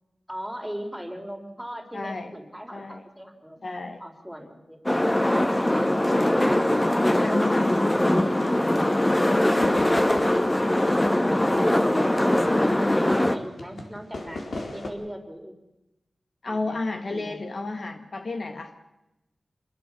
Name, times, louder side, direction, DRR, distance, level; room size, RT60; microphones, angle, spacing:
voice 1, 0.3-3.7 4.0-4.8 5.1-6.8 7.6-8.6 10.9-12.5 12.8-15.6 16.5-16.8 17.1-17.4, equal, ahead, 4 dB, 3.9 m, -39 dB
voice 2, 1.9-2.3 2.7-3.0 3.6-4.0 7.1-7.7 9.6-10.1 16.4-18.8, left 3 dB, 55° left, 7 dB, 1.8 m, -32 dB
sound 1, 4.9-13.4, left 1 dB, 15° left, 1.5 m, -22 dB
sound 2, 9.6-12.8 13.1-14.9, left 2 dB, 70° left, 4.3 m, -37 dB
27.0 x 21.0 x 6.9 m, 0.97 s
wide cardioid pair, 100°, 0 cm